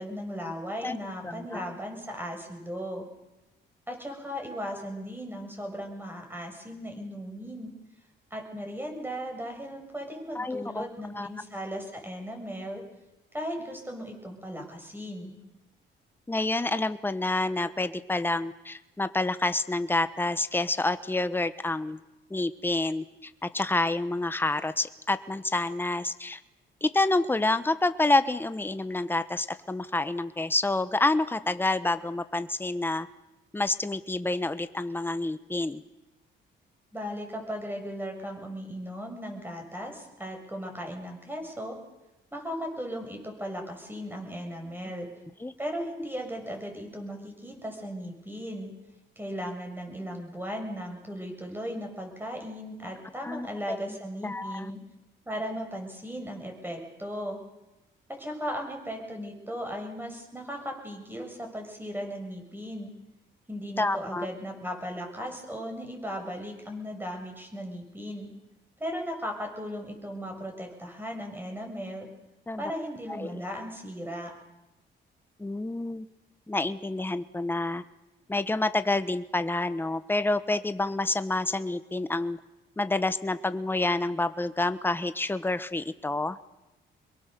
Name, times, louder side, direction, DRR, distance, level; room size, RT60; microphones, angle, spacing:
voice 1, 0.0-3.1 3.9-7.7 8.3-12.8 13.3-15.4 36.9-41.8 42.3-45.1 45.6-48.8 49.2-54.8 55.3-57.4 58.1-63.0 63.5-68.3 68.8-72.1 72.6-74.3, equal, 10° right, 3 dB, 7.4 m, -37 dB
voice 2, 10.3-10.9 11.1-11.3 16.3-22.0 22.3-26.4 26.8-33.1 33.5-35.8 45.4-45.5 53.2-54.7 63.8-64.3 72.5-72.6 73.1-73.3 75.4-76.1 76.5-77.8 78.3-82.4 82.8-86.4, left 2 dB, 10° left, 12 dB, 1.1 m, -28 dB
25.0 x 22.5 x 6.9 m, 0.99 s
cardioid pair, 90°, 20 cm